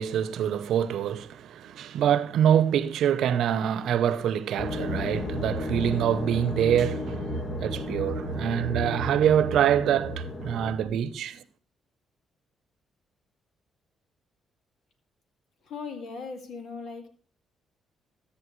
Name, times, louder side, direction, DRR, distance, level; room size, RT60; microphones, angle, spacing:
voice 1, 0.0-11.4, right 9 dB, 75° right, 0.8 m, -25 dB
sound 1, 4.6-10.8, left 1 dB, 40° left, 1.9 m, -33 dB
voice 2, 15.6-17.1, left 4 dB, 70° left, 2.2 m, -38 dB
13.5 x 8.7 x 3.2 m
cardioid pair, 90°, 0 cm